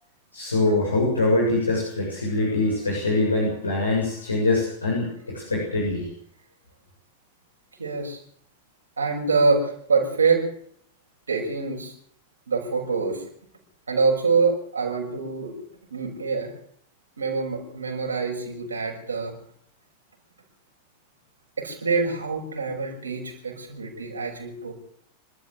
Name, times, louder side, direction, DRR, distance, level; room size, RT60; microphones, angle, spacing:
voice 1, 0.3-6.1, left 2 dB, 80° left, -3 dB, 7.5 m, -23 dB
voice 2, 7.8-8.2 9.0-10.4 11.3-11.9 12.5-13.2 13.9-15.5 15.9-16.5 17.2-19.3 21.6-24.7, right 4 dB, 75° right, -1 dB, 6.1 m, -25 dB
26.5 x 13.0 x 8.0 m, 0.64 s
figure-of-eight pair, 90°, 0 cm